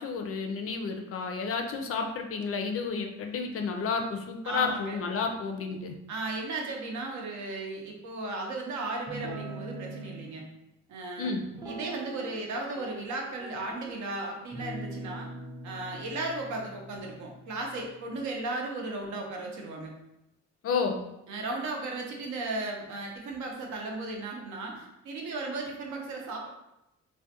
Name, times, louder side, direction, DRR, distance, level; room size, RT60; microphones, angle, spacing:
voice 1, 0.0-5.9 11.2-11.4 20.6-21.0, left 5 dB, 50° left, 4 dB, 0.4 m, -31 dB
voice 2, 4.4-5.0 6.1-10.5 10.9-11.3 11.6-15.3 15.6-19.9 21.3-26.5, right 2 dB, 70° right, 1 dB, 0.6 m, -35 dB
Guitar, 9.1-10.3 11.5-12.5 12.8-13.9 14.5-18.0, right 2 dB, 15° right, 0.4 m, -42 dB
2.4 x 2.1 x 2.7 m, 0.88 s
cardioid pair, 90°, 30 cm